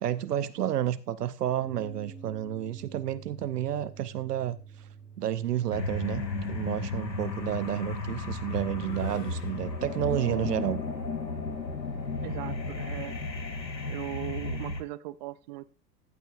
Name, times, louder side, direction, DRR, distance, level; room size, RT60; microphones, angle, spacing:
voice 1, 0.0-4.9 5.2-6.2 6.5-10.8, right 11 dB, 70° right, 15 dB, 0.8 m, -31 dB
sound 1, 1.6-14.6, right 5 dB, 5° right, 3.0 m, -51 dB
sound 2, 3.2-3.6 5.0-10.2, left 4 dB, 45° left, 3.3 m, -52 dB
sound 3, 5.7-14.8, left 3 dB, 90° left, 1.3 m, -34 dB
voice 2, 12.2-13.2 13.8-15.7, right 17 dB, 30° right, 17 dB, 0.4 m, -38 dB
14.0 x 8.9 x 2.5 m, 0.34 s
figure-of-eight pair, 95°, 50 cm